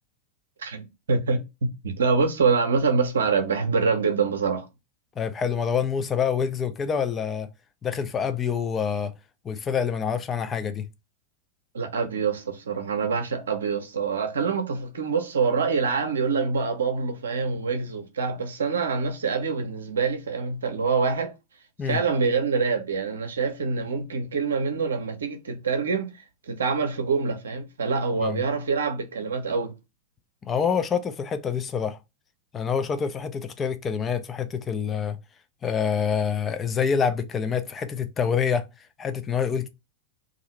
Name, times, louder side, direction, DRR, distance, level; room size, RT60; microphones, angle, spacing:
voice 1, 0.6-1.4 1.8-4.7 11.7-21.3 21.8-26.1 26.5-29.7, right 5 dB, 65° right, 0.6 m, -25 dB
voice 2, 5.2-7.5 7.8-9.1 9.4-10.9 21.8-22.0 28.2-28.4 30.4-32.0 32.5-35.2 35.6-39.7, left 7 dB, 20° left, 0.4 m, -26 dB
2.7 x 2.5 x 3.0 m
figure-of-eight pair, 90°, 0 cm